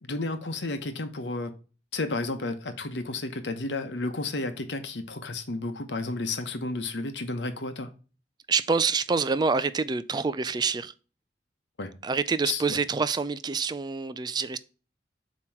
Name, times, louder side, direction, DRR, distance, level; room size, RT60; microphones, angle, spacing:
voice 1, 0.1-1.5 1.9-7.9 11.8-11.9 12.5-12.8, left 2 dB, 80° left, 1.0 m, -32 dB
voice 2, 8.5-10.9 12.0-14.6, right 4 dB, 25° right, 0.3 m, -26 dB
7.4 x 3.0 x 4.4 m
head